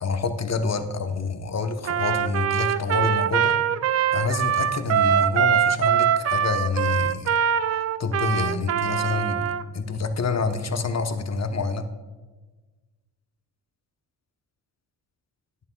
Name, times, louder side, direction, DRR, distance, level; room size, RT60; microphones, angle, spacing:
voice 1, 0.0-3.5 4.1-7.3 8.0-9.5 9.7-11.8, left 4 dB, 35° left, 8 dB, 0.9 m, -27 dB
Trumpet, 1.8-9.6, right 9 dB, 35° right, 0.4 m, -23 dB
10.5 x 8.6 x 2.3 m, 1.3 s
supercardioid pair, 45°, 47 cm